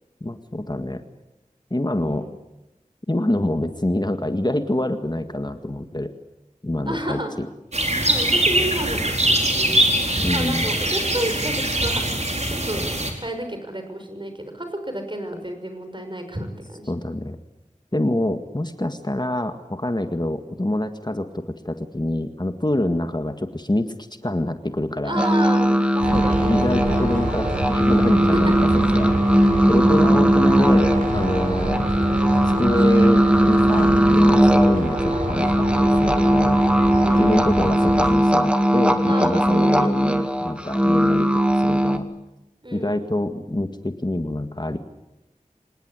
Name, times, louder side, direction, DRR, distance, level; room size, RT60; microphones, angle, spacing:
voice 1, 0.2-1.0 1.7-2.3 3.1-6.1 6.6-7.2 10.1-10.7 16.9-17.4 17.9-23.9 24.2-25.2 26.1-28.7 28.9-29.2 29.7-31.9 32.6-36.6 37.2-42.1 42.7-44.8, left 1 dB, 30° left, 8 dB, 1.8 m, -26 dB
voice 2, 2.0-2.3 6.8-7.3 8.0-9.9 10.3-12.9 13.2-16.9 25.0-26.5 28.0-28.1 28.4-28.5 29.9-30.2 37.0-37.5 39.0-39.9 42.6-43.0, right 1 dB, 35° right, 6 dB, 5.9 m, -31 dB
sound 1, 7.7-13.1, right 1 dB, 55° right, 4.5 m, -22 dB
sound 2, 25.2-42.0, equal, 10° right, 2.1 m, -18 dB
sound 3, 26.0-38.1, right 2 dB, 85° right, 4.1 m, -28 dB
26.0 x 19.5 x 9.8 m, 0.94 s
wide cardioid pair, 40°, 14 cm